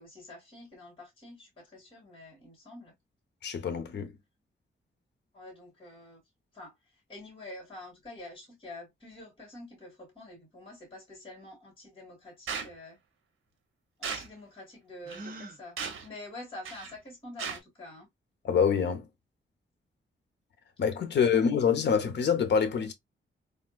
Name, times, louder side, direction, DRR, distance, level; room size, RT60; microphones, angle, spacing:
voice 1, 0.0-2.9 5.3-6.2 6.5-6.7 7.1-13.0 14.0-18.1 21.3-21.4, left 2 dB, 25° left, 2.3 m, -47 dB
voice 2, 3.4-4.1 18.4-19.1 20.8-22.9, left 6 dB, 60° left, 0.7 m, -26 dB
sound 1, 12.5-12.7 14.0-14.3 15.1-15.2 15.8-16.1 16.6-16.9 17.4-17.6, right 6 dB, 85° right, 0.8 m, -36 dB
Gasp, 15.0-15.6, right 2 dB, 45° right, 0.8 m, -43 dB
3.5 x 2.5 x 2.2 m
wide cardioid pair, 155°, 20 cm